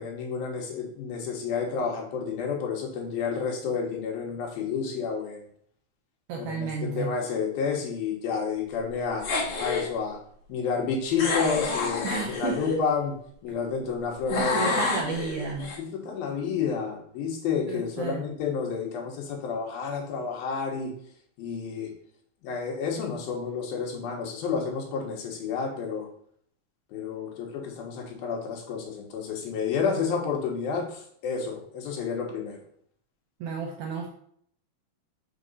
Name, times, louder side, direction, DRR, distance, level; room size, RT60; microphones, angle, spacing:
voice 1, 0.0-5.4 6.4-9.3 9.6-10.2 10.5-13.1 13.4-14.8 15.8-20.9 21.4-21.9 22.4-26.1 26.9-32.6, left 6 dB, 75° left, 0 dB, 3.0 m, -30 dB
voice 2, 6.3-7.1 12.0-12.6 13.6-13.8 14.3-15.7 17.7-18.3 33.4-34.1, right 5 dB, 75° right, 1 dB, 1.9 m, -32 dB
sound 1, 9.2-9.9 11.2-12.8 14.3-15.8, left 3 dB, 55° left, 2.7 m, -29 dB
6.7 x 3.7 x 5.5 m, 0.63 s
omnidirectional pair, 4.5 m